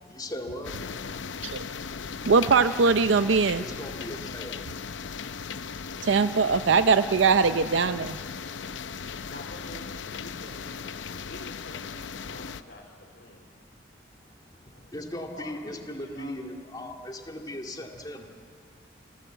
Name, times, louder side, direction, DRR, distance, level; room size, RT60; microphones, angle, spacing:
voice 1, 0.1-0.7 3.6-4.6 14.7-18.3, left 1 dB, 20° left, 1 dB, 2.1 m, -38 dB
sound 1, 0.6-12.6, left 6 dB, 85° left, 0.7 m, -37 dB
voice 2, 2.3-3.6 6.0-8.2, right 5 dB, 80° right, 12 dB, 0.6 m, -21 dB
voice 3, 8.5-10.9 11.2-13.6 14.5-14.9 15.3-16.4, left 1 dB, 60° left, -1 dB, 2.8 m, -48 dB
28.5 x 15.5 x 8.0 m, 2.1 s
head